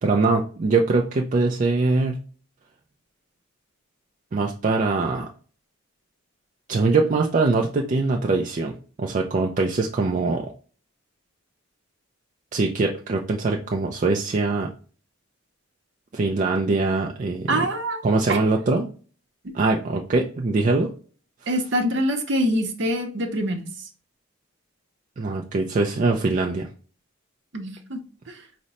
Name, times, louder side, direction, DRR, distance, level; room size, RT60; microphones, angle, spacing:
voice 1, 0.0-2.2 4.3-5.3 6.7-10.5 12.5-14.7 16.1-17.6 18.0-18.9 19.5-20.9 25.2-26.7, right 3 dB, 40° right, 1 dB, 0.4 m, -22 dB
voice 2, 17.5-18.0 18.3-18.4 21.5-23.7 27.5-28.0 28.3-28.4, equal, 60° right, 5 dB, 0.8 m, -24 dB
5.0 x 2.1 x 4.1 m, 0.40 s
head